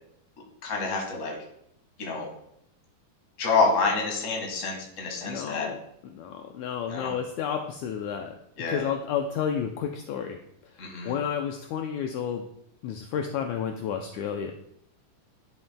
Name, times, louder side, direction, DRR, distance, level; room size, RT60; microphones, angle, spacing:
voice 1, 0.6-1.3 2.0-2.3 3.4-5.7 6.9-7.1 8.6-8.8 10.8-11.1, left 4 dB, 35° left, 0 dB, 1.3 m, -27 dB
voice 2, 5.3-8.4 8.7-10.4 11.0-12.5 12.8-14.5, left 8 dB, 85° left, 5 dB, 1.7 m, -31 dB
10.5 x 7.1 x 2.2 m, 0.75 s
omnidirectional pair, 3.8 m